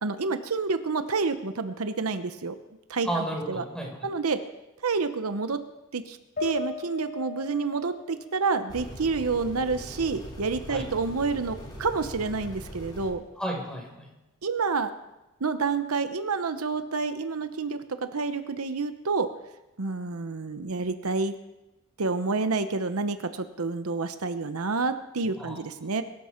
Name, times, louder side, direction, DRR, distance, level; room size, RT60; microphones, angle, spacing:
voice 1, 0.0-2.6 2.9-3.6 4.0-4.4 4.8-5.6 5.9-13.2 14.4-14.9 15.4-19.3 19.8-21.4 22.0-26.0, right 4 dB, 75° right, 10 dB, 0.9 m, -29 dB
voice 2, 3.0-4.0 10.7-10.9 13.4-14.1 25.2-25.6, right 1 dB, 5° left, 0 dB, 4.2 m, -33 dB
sound 1, 6.4-9.8 10.2-11.2, left 3 dB, 45° left, 3.7 m, -40 dB
sound 2, 8.7-13.1, equal, 20° left, 4.8 m, -41 dB
22.5 x 12.5 x 4.5 m, 0.99 s
head